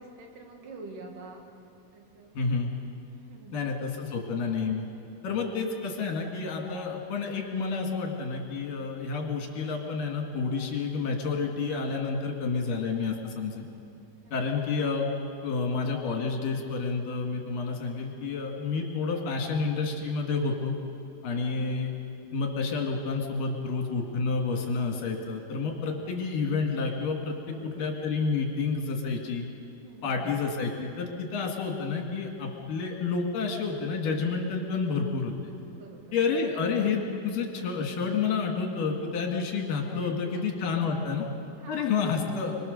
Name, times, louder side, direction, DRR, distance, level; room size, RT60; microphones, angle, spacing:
voice 1, 0.0-1.4 1.9-2.4 3.1-3.6 14.2-14.3 27.5-27.9 29.8-30.4 35.7-36.4 39.5-40.4 41.6-42.0, right 3 dB, 65° right, 2 dB, 3.5 m, -47 dB
voice 2, 2.4-2.7 3.5-4.9 5.2-13.6 14.3-15.1 15.4-20.7 21.2-21.9 22.3-29.5 30.0-35.3 36.1-41.3 41.7-42.5, left 4 dB, 70° left, 1 dB, 3.8 m, -29 dB
24.0 x 23.5 x 6.7 m, 2.6 s
omnidirectional pair, 4.1 m